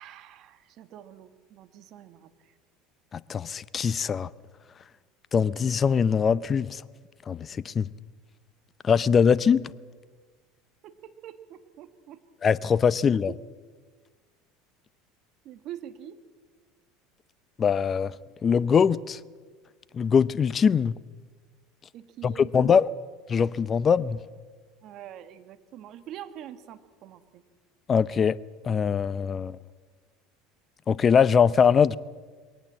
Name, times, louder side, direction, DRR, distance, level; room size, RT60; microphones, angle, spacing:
voice 1, 0.0-2.5 10.8-12.2 13.3-13.4 15.4-16.2 21.9-22.8 24.8-27.4, right 11 dB, 55° right, 1.7 m, -44 dB
voice 2, 3.3-4.3 5.3-6.8 7.3-7.9 8.8-9.6 12.4-13.3 17.6-18.1 18.4-19.2 19.9-20.9 22.2-22.9 23.3-24.2 27.9-28.4 28.6-29.6 30.9-32.0, left 6 dB, 35° left, 0.6 m, -22 dB
22.0 x 18.5 x 7.5 m
hypercardioid pair, 90°, 0 cm